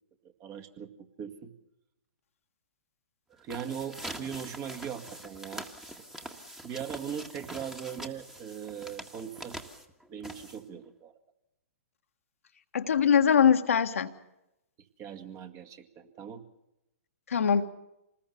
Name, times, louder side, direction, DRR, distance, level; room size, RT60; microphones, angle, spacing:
voice 1, 0.4-1.5 3.3-5.7 6.6-9.6 10.1-11.1 15.0-16.4, right 8 dB, 30° right, 6 dB, 2.1 m, -40 dB
sound 1, 3.3-10.9, right 1 dB, 5° right, 1.8 m, -44 dB
voice 2, 12.7-14.1 17.3-17.7, left 7 dB, 65° left, 6 dB, 1.5 m, -22 dB
26.5 x 20.0 x 6.9 m, 0.89 s
figure-of-eight pair, 120°, 8 cm